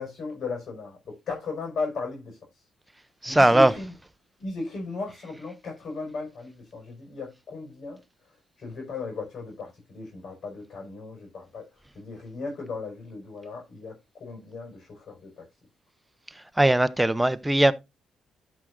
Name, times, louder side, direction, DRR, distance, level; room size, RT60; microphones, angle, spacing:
voice 1, 0.0-2.6 3.2-4.0 4.4-8.0 8.6-15.4, left 4 dB, 60° left, 5.1 m, -36 dB
voice 2, 3.2-3.7 16.6-17.7, right 1 dB, 10° right, 0.7 m, -19 dB
13.0 x 6.3 x 2.5 m
cardioid pair, 90°, 0 cm